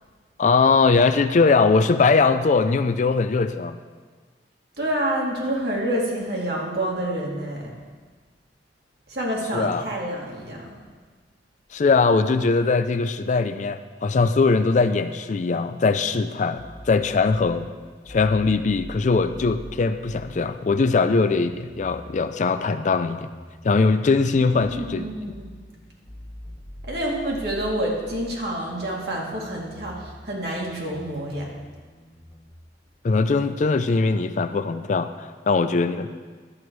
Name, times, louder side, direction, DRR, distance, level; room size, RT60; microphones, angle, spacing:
voice 1, 0.4-3.8 9.5-9.8 11.7-17.7 18.1-23.3 23.6-25.1 33.0-36.1, left 4 dB, 45° left, 10 dB, 0.4 m, -21 dB
voice 2, 4.8-7.7 9.1-10.8 24.4-25.5 26.9-31.5, right 1 dB, 65° right, -3 dB, 2.2 m, -28 dB
sound 1, 16.6-32.5, equal, 20° left, 1.5 m, -44 dB
11.0 x 8.1 x 4.6 m, 1.5 s
head